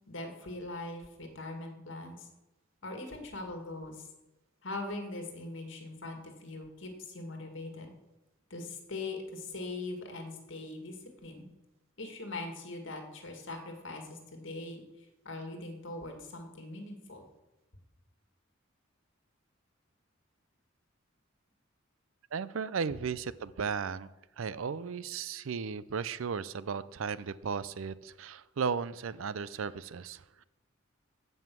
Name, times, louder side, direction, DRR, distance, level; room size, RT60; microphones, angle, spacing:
voice 1, 0.1-2.3 2.8-4.1 4.6-7.9 8.5-11.4 12.0-17.3, left 2 dB, 65° left, 4 dB, 1.9 m, -41 dB
voice 2, 22.3-24.1 24.4-30.4, right 6 dB, 80° right, 17 dB, 0.5 m, -35 dB
15.0 x 5.5 x 6.1 m, 1.0 s
head